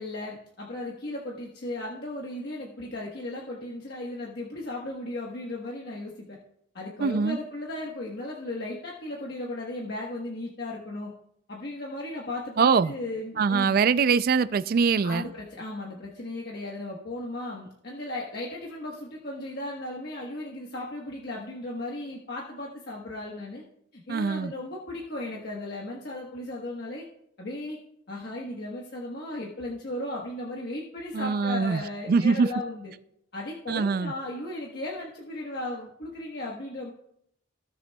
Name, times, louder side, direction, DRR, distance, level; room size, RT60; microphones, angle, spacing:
voice 1, 0.0-6.4 6.7-11.1 11.5-13.8 15.0-23.6 23.9-27.1 27.4-27.8 28.1-32.9 33.3-36.9, left 1 dB, 55° left, 1.2 m, -36 dB
voice 2, 7.0-7.4 12.6-12.9 13.4-15.3 24.1-24.5 31.1-31.8 32.1-32.5 33.7-34.1, right 5 dB, 45° right, 0.3 m, -23 dB
16.0 x 6.9 x 2.3 m
head